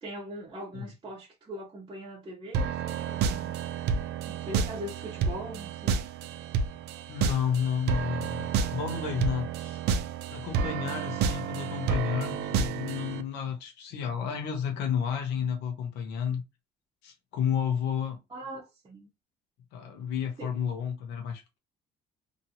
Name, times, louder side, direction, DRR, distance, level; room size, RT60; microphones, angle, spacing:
voice 1, 0.0-3.5 4.2-6.0 18.3-19.1 20.4-20.5, right 1 dB, 25° right, 1.0 m, -41 dB
sound 1, 2.5-13.2, right 6 dB, 80° right, 0.4 m, -30 dB
voice 2, 7.1-9.8 10.3-16.4 17.0-18.2 19.7-21.6, left 8 dB, 85° left, 0.8 m, -31 dB
2.8 x 2.6 x 2.8 m
cardioid pair, 110°, 17 cm